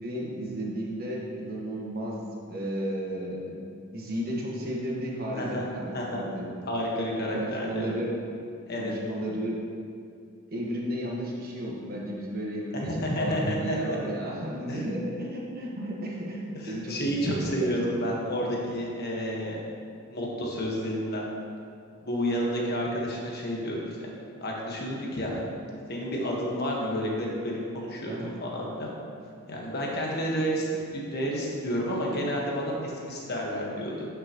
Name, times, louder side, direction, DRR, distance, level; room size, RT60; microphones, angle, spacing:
voice 1, 0.0-3.6 3.9-6.5 7.3-8.1 8.8-9.6 10.5-17.7 28.0-28.3, equal, 45° right, -3 dB, 1.4 m, -33 dB
voice 2, 5.4-5.7 5.9-6.2 6.7-7.9 8.7-8.9 12.7-14.0 14.7-14.8 16.6-19.6 20.1-21.2 22.0-24.1 24.4-25.5 25.9-28.9 29.5-30.7 30.9-34.1, equal, 50° left, -3 dB, 1.4 m, -30 dB
11.0 x 5.8 x 3.0 m, 2.4 s
head